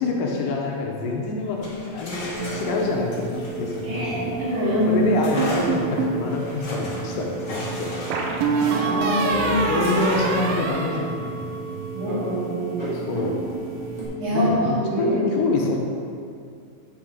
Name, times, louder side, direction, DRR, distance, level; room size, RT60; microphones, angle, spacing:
voice 1, 0.0-4.3 4.9-8.0 9.7-11.8 12.9-13.4 14.3-15.8, left 3 dB, 80° left, -1 dB, 2.3 m, -27 dB
sound 1, 1.5-4.6 5.2-9.4 9.8-10.6, left 1 dB, 55° left, 1.2 m, -35 dB
sound 2, 2.3-14.1, right 3 dB, 20° right, 1.1 m, -33 dB
voice 2, 3.8-5.1 8.7-9.7 11.9-13.1 14.2-14.5 14.8-15.4, left 1 dB, 60° right, -8 dB, 3.3 m, -24 dB
sound 3, 5.4-6.2 8.1-11.7, right 4 dB, 85° right, 2.4 m, -25 dB
9.3 x 5.5 x 3.6 m, 2.4 s
omnidirectional pair, 4.1 m